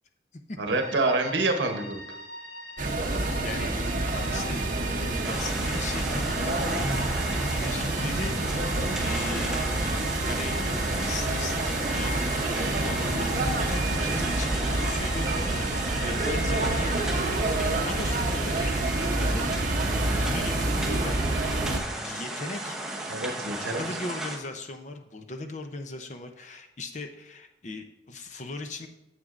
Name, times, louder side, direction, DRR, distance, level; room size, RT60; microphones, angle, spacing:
voice 1, 0.6-2.0 23.1-23.8, right 2 dB, 70° right, 5 dB, 0.9 m, -27 dB
sound 1, 0.7-20.1, left 1 dB, 55° left, 1.1 m, -42 dB
sound 2, 2.8-21.8, right 2 dB, 45° right, 0.8 m, -28 dB
voice 2, 3.0-8.3 8.9-9.7 10.2-15.5 16.0-16.9 17.6-19.5 19.8-21.4 21.6-22.8 23.6-28.9, left 2 dB, 40° left, 5 dB, 0.6 m, -39 dB
sound 3, 5.2-24.4, right 1 dB, ahead, 0.7 m, -35 dB
9.5 x 7.4 x 2.5 m, 0.91 s
head